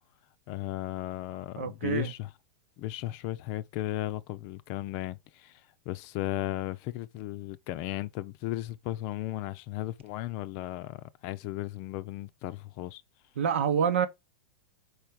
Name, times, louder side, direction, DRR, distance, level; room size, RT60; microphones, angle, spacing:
voice 1, 0.5-2.3 2.8-13.0, left 15 dB, 45° left, 0.5 m, -35 dB
voice 2, 1.6-2.1 13.4-14.1, right 7 dB, 70° right, 0.9 m, -27 dB
4.8 x 4.5 x 4.6 m
hypercardioid pair, 100°, 7 cm